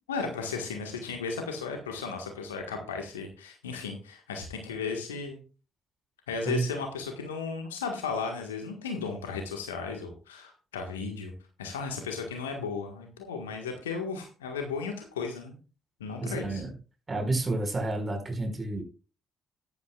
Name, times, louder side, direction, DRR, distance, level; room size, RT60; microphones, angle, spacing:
voice 1, 0.1-5.4 6.3-11.3 11.6-15.6 16.0-16.6, left 5 dB, 80° left, 4 dB, 1.5 m, -35 dB
voice 2, 16.2-16.7 17.1-18.8, right 2 dB, 30° right, 3 dB, 5.2 m, -30 dB
15.5 x 11.0 x 2.4 m, 0.34 s
figure-of-eight pair, 45°, 0 cm